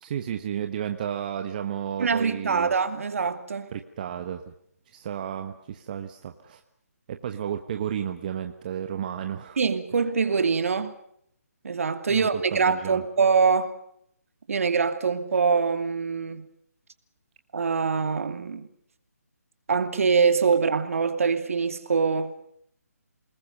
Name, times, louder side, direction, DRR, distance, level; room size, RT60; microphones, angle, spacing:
voice 1, 0.0-2.7 3.7-4.5 4.9-6.6 7.1-9.6 12.1-13.0, right 9 dB, 30° right, 1.2 m, -32 dB
voice 2, 2.0-3.7 9.6-10.9 11.6-13.8 14.5-16.4 17.5-18.7 19.7-22.3, right 5 dB, 55° right, 2.7 m, -24 dB
29.0 x 20.5 x 6.7 m
hypercardioid pair, 160°, 9 cm